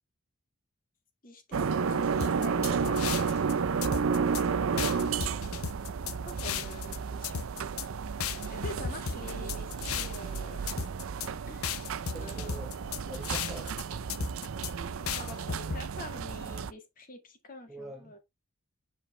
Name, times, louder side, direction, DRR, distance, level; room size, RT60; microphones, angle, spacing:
voice 1, 1.2-3.6 3.9-5.4 6.2-7.5 8.5-10.8 11.5-11.9 12.1-12.7 15.0-18.2, left 2 dB, 40° left, 1.8 m, -46 dB
sound 1, 1.5-16.7, right 5 dB, 75° right, 0.5 m, -32 dB
sound 2, 2.2-3.5 3.8-4.4 4.8-7.0 7.2-7.9 8.2-10.4 10.7-11.3 11.6-13.8 14.1-14.7 15.1-15.8, left 7 dB, 85° left, 0.7 m, -35 dB
voice 2, 12.1-12.7 13.1-13.8 17.7-18.2, right 1 dB, ahead, 1.1 m, -44 dB
6.8 x 5.2 x 3.3 m
head